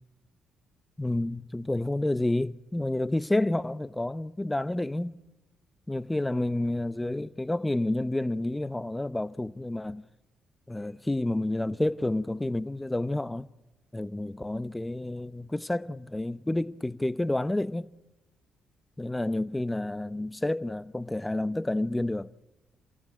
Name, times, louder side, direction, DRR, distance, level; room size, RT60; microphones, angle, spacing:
voice 1, 1.0-5.1 5.9-10.1 10.7-13.5 13.9-17.9 19.0-22.3, left 1 dB, 10° left, 0.8 m, -29 dB
29.0 x 15.0 x 10.0 m
cardioid pair, 90°, 0 cm